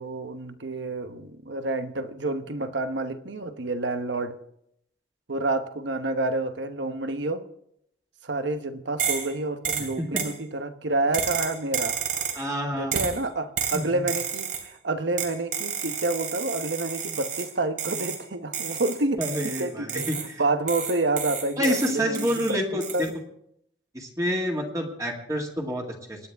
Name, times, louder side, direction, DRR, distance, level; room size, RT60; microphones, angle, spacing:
voice 1, 0.0-4.4 5.3-7.4 8.2-12.0 12.7-23.1, right 2 dB, 80° right, 9 dB, 1.1 m, -29 dB
sound 1, 9.0-9.3 9.6-10.4 11.1-12.5 12.9-13.2 13.6-14.7 15.2-17.5 17.8-18.2 18.5-20.3 20.7-22.5 22.8-23.1, right 7 dB, 45° right, 2.9 m, -31 dB
voice 2, 12.3-13.0 13.7-14.0 19.2-20.4 21.6-23.1 23.9-26.2, equal, 20° right, 0 dB, 2.1 m, -28 dB
26.0 x 9.8 x 3.5 m, 0.74 s
head